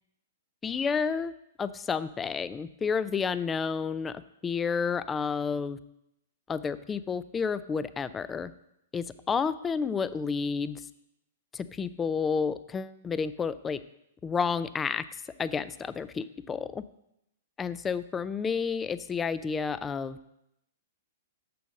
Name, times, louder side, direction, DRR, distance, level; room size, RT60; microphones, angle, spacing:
voice 1, 0.6-1.3 1.6-5.8 6.5-8.5 8.9-10.8 11.5-13.8 14.2-15.0 15.4-16.8 17.6-20.2, left 5 dB, 15° left, 15 dB, 0.3 m, -30 dB
6.9 x 6.3 x 6.3 m, 0.82 s
hypercardioid pair, 150°, 0 cm